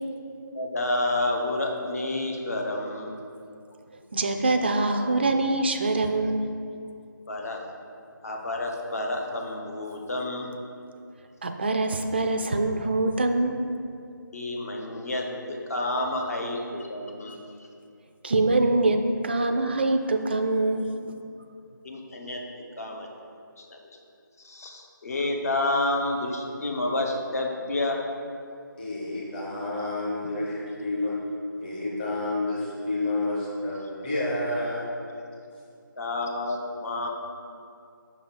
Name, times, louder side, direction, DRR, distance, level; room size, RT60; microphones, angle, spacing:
voice 1, 0.5-3.1 7.3-7.6 8.2-10.5 14.3-17.4 21.8-22.4 22.8-23.1 23.6-23.8 24.4-28.0 36.0-37.1, left 2 dB, 45° left, 1 dB, 0.9 m, -29 dB
voice 2, 4.1-6.5 11.4-13.6 18.2-20.9, right 2 dB, 30° right, 6 dB, 0.3 m, -24 dB
voice 3, 28.8-31.2 31.6-34.9, left 2 dB, 25° left, -6 dB, 1.3 m, -29 dB
5.8 x 4.2 x 5.5 m, 2.5 s
figure-of-eight pair, 160°, 11 cm